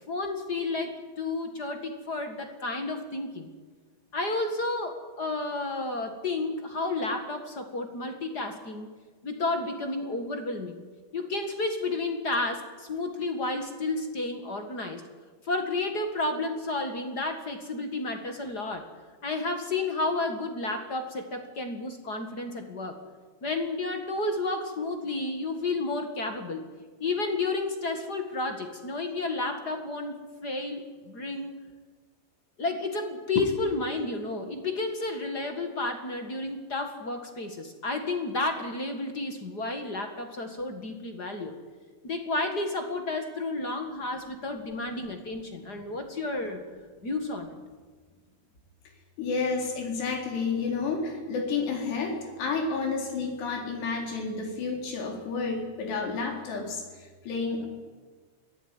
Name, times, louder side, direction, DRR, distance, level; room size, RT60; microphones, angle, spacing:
voice 1, 0.1-3.5 4.1-8.9 9.2-10.8 11.1-15.0 15.4-18.9 19.2-23.0 23.4-26.7 27.0-31.6 32.6-41.6 42.0-46.6 47.0-47.6, left 2 dB, 40° left, 6 dB, 1.5 m, -31 dB
voice 2, 49.2-57.7, left 4 dB, 85° left, 2 dB, 6.2 m, -30 dB
24.0 x 17.0 x 9.9 m, 1.4 s
omnidirectional pair, 4.7 m